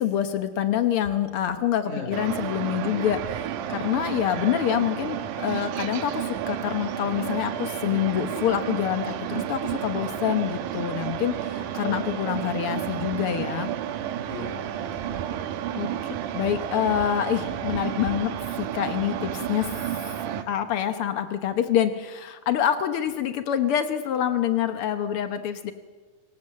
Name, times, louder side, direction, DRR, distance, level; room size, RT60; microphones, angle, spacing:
voice 1, 0.0-13.7 15.8-15.9 16.3-18.3 18.6-19.8 20.5-25.7, left 10 dB, 85° left, 9 dB, 1.2 m, -26 dB
voice 2, 1.8-2.2 11.8-12.3 14.2-15.5 20.3-20.6, left 4 dB, 60° left, 4 dB, 5.2 m, -40 dB
sound 1, 2.1-20.4, right 10 dB, 70° right, 2.4 m, -31 dB
25.5 x 16.0 x 7.6 m, 1.3 s
omnidirectional pair, 4.0 m